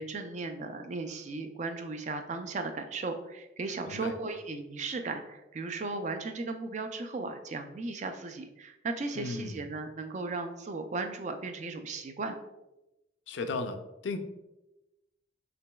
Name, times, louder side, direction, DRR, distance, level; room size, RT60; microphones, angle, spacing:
voice 1, 0.0-12.3, right 3 dB, 40° right, 7 dB, 0.4 m, -36 dB
voice 2, 9.1-9.7 13.3-13.8 14.0-14.2, left 3 dB, 80° left, 7 dB, 0.4 m, -35 dB
5.9 x 2.9 x 2.3 m, 0.97 s
head